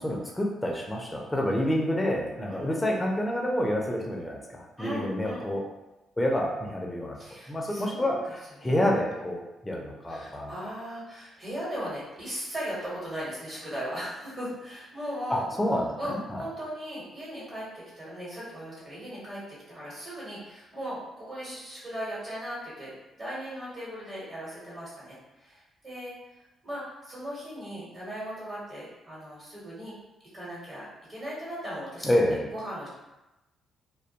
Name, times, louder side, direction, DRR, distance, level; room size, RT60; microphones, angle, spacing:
voice 1, 0.0-5.6 6.2-7.2 7.5-10.5 15.3-16.4 32.0-32.5, left 1 dB, 15° left, 0 dB, 0.4 m, -28 dB
voice 2, 2.5-2.9 4.8-5.5 7.1-8.2 8.6-8.9 10.1-15.4 16.0-26.1 26.6-29.9 30.3-32.9, equal, 40° right, -7 dB, 1.1 m, -38 dB
2.2 x 2.1 x 2.8 m, 1.0 s
cardioid pair, 90°, 0 cm